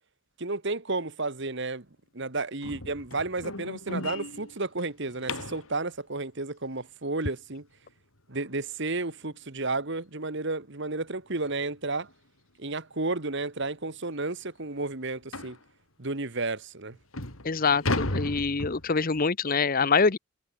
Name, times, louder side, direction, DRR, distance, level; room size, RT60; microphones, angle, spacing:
voice 1, 0.4-1.9 2.1-7.7 8.3-12.1 12.6-15.6 16.0-17.0, right 3 dB, 55° right, 1.8 m, -32 dB
Window Lock, 2.6-5.7 8.5-8.6 9.1-9.3 9.6-9.7 10.2-10.3 11.4-11.6 12.0-12.1 12.8-12.9 13.2-13.3 13.8-13.9 15.3-15.6 16.4-16.5 16.9-19.2, left 2 dB, 75° left, 5.5 m, -35 dB
voice 2, 17.4-20.2, left 4 dB, 40° left, 0.8 m, -25 dB
head